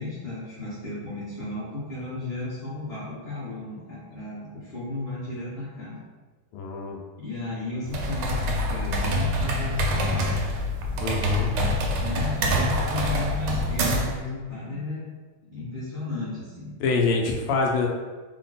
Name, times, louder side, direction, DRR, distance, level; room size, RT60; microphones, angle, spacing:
voice 1, 0.0-6.0 7.2-10.4 11.5-15.0 15.5-16.7, left 2 dB, 30° left, -13 dB, 0.8 m, -34 dB
voice 2, 6.5-7.0 11.0-11.5 16.8-17.9, left 4 dB, 85° left, 0 dB, 1.5 m, -25 dB
sound 1, 7.9-14.2, equal, 75° right, 1.0 m, -26 dB
3.7 x 2.1 x 4.0 m, 1.3 s
omnidirectional pair, 2.4 m